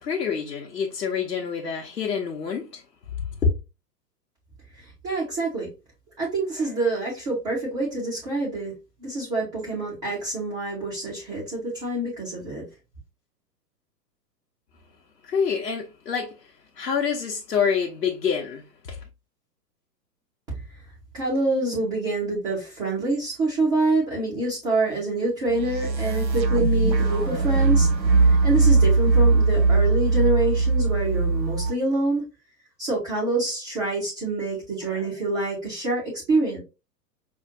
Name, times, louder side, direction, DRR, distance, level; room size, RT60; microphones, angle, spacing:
voice 1, 0.0-2.8 3.4-3.5 15.2-16.4 16.8-19.0, left 6 dB, 75° left, 0.9 m, -26 dB
voice 2, 4.7-5.7 6.2-8.7 9.0-12.6 21.1-27.9 28.2-32.2 32.8-36.6, right 2 dB, 10° right, 0.5 m, -26 dB
sound 1, 25.5-31.7, right 3 dB, 85° right, 0.9 m, -20 dB
5.1 x 2.4 x 2.7 m
figure-of-eight pair, 110°, 50 cm